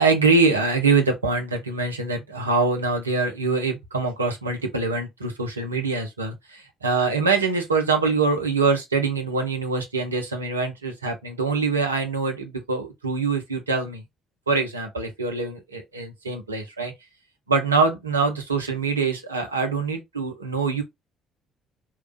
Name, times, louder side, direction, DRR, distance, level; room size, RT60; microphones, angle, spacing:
voice 1, 0.0-14.0 14.5-16.9 17.5-20.8, right 4 dB, 90° right, 0.7 m, -24 dB
3.2 x 2.4 x 3.3 m
figure-of-eight pair, 50°, 0 cm